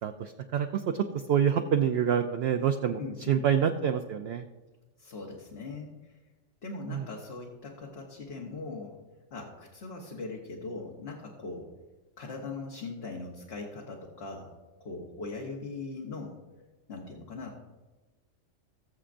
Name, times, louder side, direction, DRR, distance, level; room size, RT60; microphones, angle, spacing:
voice 1, 0.0-3.0 3.3-4.5 6.9-7.1, right 8 dB, 65° right, 6 dB, 0.7 m, -27 dB
voice 2, 3.0-3.4 5.0-6.1 6.6-8.9 9.3-11.7 12.2-14.5 14.8-16.4 16.9-17.6, left 3 dB, 55° left, -1 dB, 1.2 m, -40 dB
20.0 x 7.1 x 2.5 m, 1.2 s
omnidirectional pair, 1.4 m